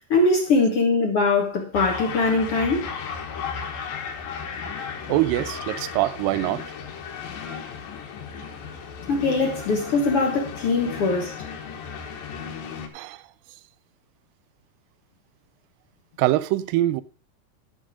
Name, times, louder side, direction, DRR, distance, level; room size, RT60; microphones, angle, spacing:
voice 1, 0.1-2.9 9.1-11.3, left 3 dB, 60° left, 1.6 m, -22 dB
sound 1, 1.7-12.9, left 6 dB, 75° left, 3.0 m, -35 dB
voice 2, 5.1-6.6 12.9-13.2 16.2-17.0, right 15 dB, 80° right, 2.2 m, -23 dB
12.0 x 6.3 x 5.0 m
omnidirectional pair, 4.2 m